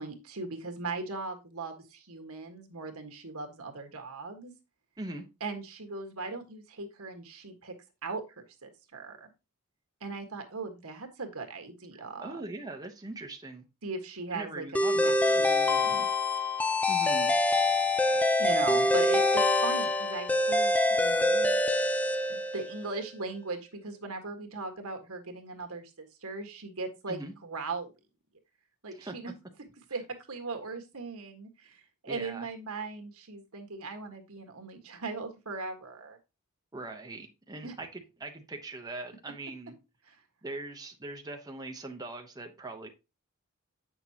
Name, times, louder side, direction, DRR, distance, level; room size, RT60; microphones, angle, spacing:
voice 1, 0.0-4.5 5.4-7.7 8.0-8.2 8.6-9.3 10.0-12.3 13.8-14.7 14.9-16.1 18.1-21.6 22.3-27.9 28.8-29.3 29.9-30.0 30.3-36.2 37.6-37.7 40.0-40.1, right 3 dB, 75° right, 4 dB, 1.6 m, -39 dB
voice 2, 11.9-13.6 14.3-15.5 16.9-17.4 27.1-27.3 28.9-29.2 32.1-32.5 36.7-39.7 40.4-42.9, right 2 dB, 15° right, 3 dB, 0.9 m, -41 dB
sound 1, 14.8-22.9, left 2 dB, 5° left, 0.6 m, -25 dB
8.3 x 6.1 x 2.9 m, 0.27 s
head